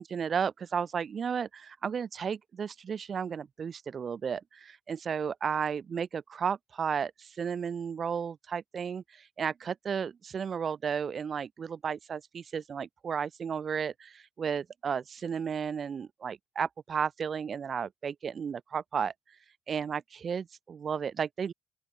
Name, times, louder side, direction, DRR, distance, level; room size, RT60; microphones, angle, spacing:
voice 1, 0.0-19.1 19.7-21.5, right 7 dB, 50° right, 4.5 m, -33 dB
open air
cardioid pair, 90°, 0 cm